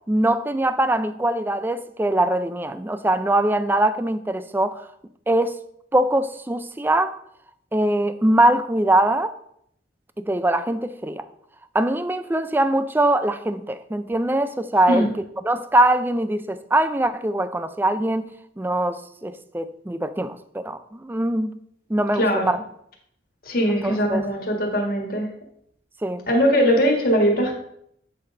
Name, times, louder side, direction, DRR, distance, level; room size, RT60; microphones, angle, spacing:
voice 1, 0.1-4.8 5.3-5.6 5.9-7.1 7.7-9.3 10.2-11.2 11.7-15.1 15.5-21.5 21.9-22.6 23.7-24.2 26.0-26.3, right 1 dB, 10° right, 0.3 m, -22 dB
voice 2, 22.1-22.5 23.4-25.3 26.3-27.5, equal, 55° left, 1.6 m, -20 dB
7.9 x 4.1 x 5.0 m
head